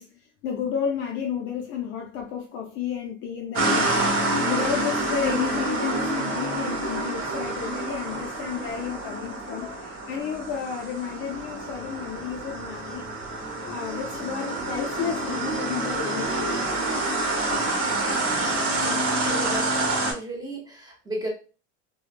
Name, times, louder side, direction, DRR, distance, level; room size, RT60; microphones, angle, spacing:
voice 1, 0.0-16.8 19.2-19.5, left 7 dB, 35° left, 0.4 m, -32 dB
sound 1, 3.5-20.1, right 2 dB, 40° right, 1.1 m, -27 dB
voice 2, 18.8-19.6 20.0-21.3, right 1 dB, 10° right, 0.6 m, -35 dB
3.0 x 2.1 x 2.4 m
supercardioid pair, 145°, 35 cm